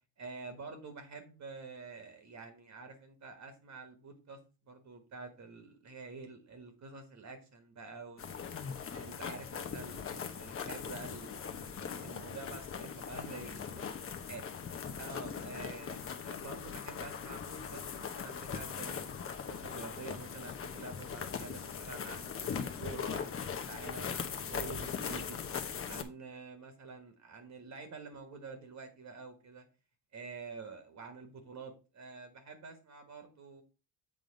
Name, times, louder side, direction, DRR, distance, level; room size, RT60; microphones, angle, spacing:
voice 1, 0.2-4.4 4.6-8.5 8.9-13.9 14.3-14.4 15.0-19.2 19.4-25.4 25.9-29.6 30.1-33.6, right 4 dB, 40° right, 7 dB, 1.5 m, -48 dB
sound 1, 8.2-26.0, left 7 dB, 30° left, 0.9 m, -40 dB
7.6 x 3.7 x 5.1 m, 0.32 s
cardioid pair, 115°, 42 cm